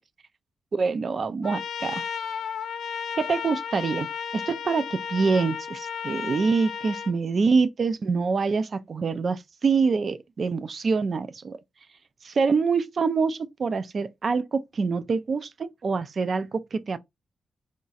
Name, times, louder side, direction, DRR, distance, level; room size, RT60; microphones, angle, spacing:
voice 1, 0.7-2.0 3.2-4.1 4.3-11.6 12.2-17.0, right 4 dB, 40° right, 0.3 m, -25 dB
Trumpet, 1.4-7.1, left 7 dB, 85° left, 0.6 m, -33 dB
5.0 x 2.3 x 3.9 m
wide cardioid pair, 170°, 0 cm